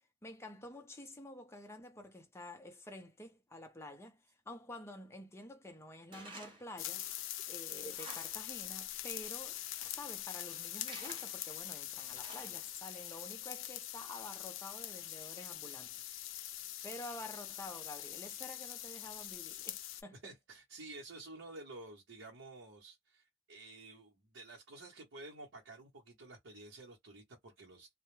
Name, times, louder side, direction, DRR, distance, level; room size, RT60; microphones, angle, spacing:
voice 1, 0.0-7.1 7.5-16.0 16.8-20.2, left 1 dB, 15° left, 0.5 m, -49 dB
Tools, 6.1-6.7 7.1-7.2 7.7-8.5 8.8-8.9 9.5-10.0 10.5-11.5 11.9-12.8, right 2 dB, 25° right, 0.8 m, -52 dB
sound 1, 6.8-20.0, left 13 dB, 75° left, 0.4 m, -43 dB
voice 2, 20.1-27.9, right 2 dB, 70° right, 0.9 m, -51 dB
2.1 x 2.1 x 3.1 m
head